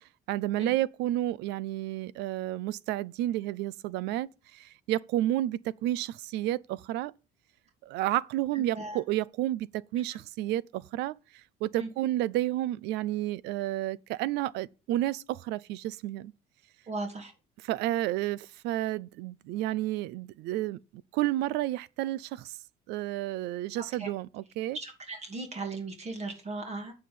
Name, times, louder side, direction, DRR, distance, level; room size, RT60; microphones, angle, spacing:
voice 1, 0.3-7.1 7.8-9.7 9.9-11.2 11.6-16.3 17.6-20.8 21.1-22.6 22.9-24.8, right 14 dB, 90° right, 0.5 m, -31 dB
voice 2, 16.9-17.3 24.0-24.1 24.7-26.9, right 2 dB, 40° right, 2.6 m, -37 dB
9.3 x 5.8 x 6.9 m
cardioid pair, 110°, 17 cm